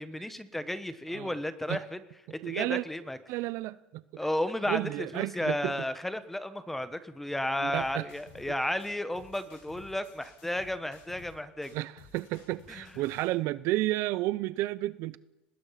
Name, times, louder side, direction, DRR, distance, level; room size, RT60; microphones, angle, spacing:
voice 1, 0.0-2.0 2.3-3.2 4.2-11.7 12.7-12.8, left 1 dB, 5° left, 1.2 m, -33 dB
voice 2, 2.4-2.8 3.3-4.2 4.7-5.7 7.6-8.1 11.7-15.2, right 17 dB, 55° right, 0.7 m, -32 dB
sound 1, 7.7-8.5 8.8-11.4 11.6-13.3, left 5 dB, 65° left, 7.8 m, -54 dB
24.0 x 20.0 x 5.8 m
cardioid pair, 150°, 5 cm